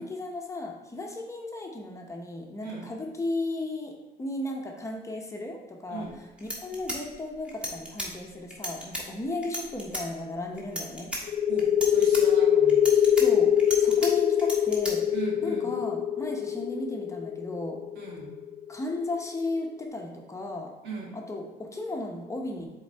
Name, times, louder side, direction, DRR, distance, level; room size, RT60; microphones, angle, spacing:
voice 1, 0.0-6.1 6.4-11.1 13.2-15.1 15.4-17.8 18.7-20.7 21.1-22.7, left 2 dB, 15° left, 1 dB, 0.9 m, -35 dB
sound 1, 6.0-6.1 6.4-8.1 8.5-9.0 9.4-10.0 10.6-11.2 11.6-12.2 12.7-14.1 14.4-14.9, equal, 5° right, 1.4 m, -34 dB
sound 2, 11.3-18.7, left 9 dB, 65° left, 0.4 m, -23 dB
voice 2, 11.5-13.1 15.1-15.8 17.9-18.3 20.8-21.2, right 4 dB, 80° right, -4 dB, 2.0 m, -39 dB
7.2 x 3.9 x 3.4 m, 1.1 s
cardioid pair, 110°, 17 cm